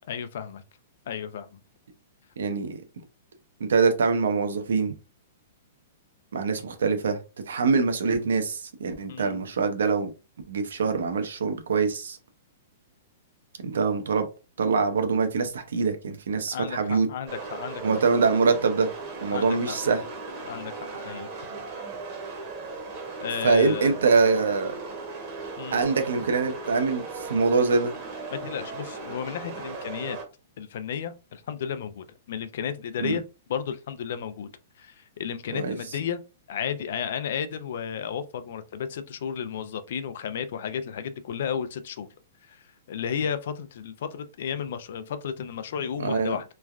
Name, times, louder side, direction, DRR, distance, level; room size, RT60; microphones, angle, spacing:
voice 1, 0.1-0.6 1.1-1.5 9.1-9.4 16.5-17.8 19.3-19.8 20.4-21.3 23.2-23.9 25.6-25.8 28.3-30.2 30.6-33.2 33.5-34.5 34.8-36.2 36.5-42.1 42.5-42.6 42.9-46.4, left 8 dB, 65° left, 0.4 m, -33 dB
voice 2, 2.4-2.8 3.6-4.9 6.3-7.2 7.5-10.1 10.5-12.2 13.6-14.3 14.6-17.1 17.8-18.9 19.2-20.0 23.4-24.8 25.7-27.9 33.0-33.2 35.5-35.8 46.0-46.4, right 4 dB, 90° right, 0.6 m, -24 dB
sound 1, 17.3-30.2, right 3 dB, 35° right, 0.9 m, -37 dB
3.1 x 2.3 x 2.4 m
hypercardioid pair, 150°, 0 cm